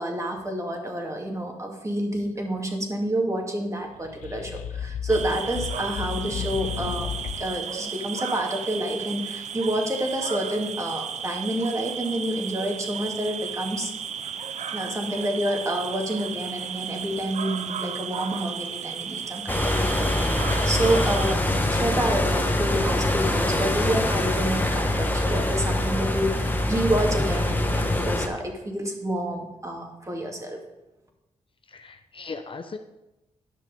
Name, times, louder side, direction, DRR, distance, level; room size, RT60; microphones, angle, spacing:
voice 1, 0.0-7.1 7.4-13.9 14.7-21.4 21.7-30.6, right 1 dB, 25° right, 1 dB, 2.2 m, -28 dB
sound 1, 3.9-7.6, left 9 dB, 90° left, 0.4 m, -33 dB
sound 2, 5.1-21.4, right 7 dB, 70° right, 0.5 m, -34 dB
sound 3, 19.5-28.3, left 1 dB, 15° left, 1.3 m, -24 dB
voice 2, 31.7-32.8, left 4 dB, 45° left, 7 dB, 0.7 m, -38 dB
10.0 x 6.3 x 5.3 m, 0.97 s
cardioid pair, 60°, 12 cm